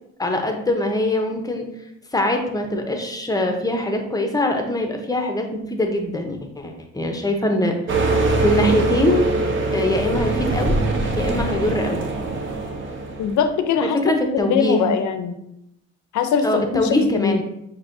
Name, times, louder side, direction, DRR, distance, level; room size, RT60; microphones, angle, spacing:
voice 1, 0.2-1.7 2.1-7.7 8.4-9.2 9.7-10.7 11.2-12.0 13.8-14.9 16.4-17.4, left 1 dB, 10° left, 3 dB, 0.7 m, -22 dB
sound 1, 7.9-13.5, right 2 dB, 40° right, 0.8 m, -22 dB
voice 2, 13.2-14.0 14.3-15.4 16.1-17.3, left 6 dB, 70° left, 8 dB, 0.6 m, -21 dB
6.0 x 2.8 x 2.6 m, 0.80 s
cardioid pair, 90°, 30 cm